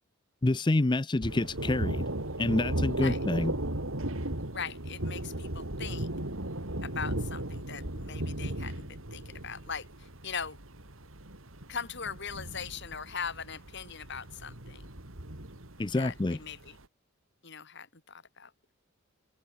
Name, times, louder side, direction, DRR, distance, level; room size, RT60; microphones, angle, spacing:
voice 1, 0.4-2.1 2.4-3.5 15.8-16.4, left 2 dB, 20° left, 0.5 m, -27 dB
Thunder, 1.2-16.7, right 1 dB, 70° right, 3.7 m, -36 dB
voice 2, 4.5-6.1 6.8-9.9 10.2-10.6 11.7-14.8 16.0-16.7 17.4-18.5, left 6 dB, 55° left, 3.8 m, -40 dB
head